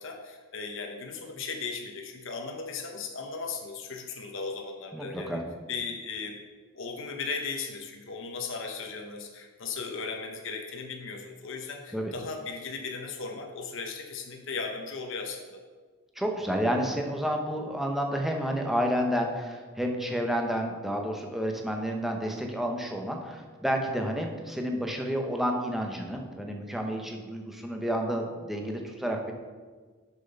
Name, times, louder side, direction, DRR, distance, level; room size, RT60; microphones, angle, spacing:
voice 1, 0.0-5.4 5.7-6.4 6.7-15.6, left 4 dB, 60° left, 3 dB, 0.8 m, -37 dB
voice 2, 4.9-5.4 11.9-12.1 16.2-29.3, equal, ahead, 1 dB, 0.8 m, -30 dB
6.7 x 6.0 x 5.5 m, 1.5 s
head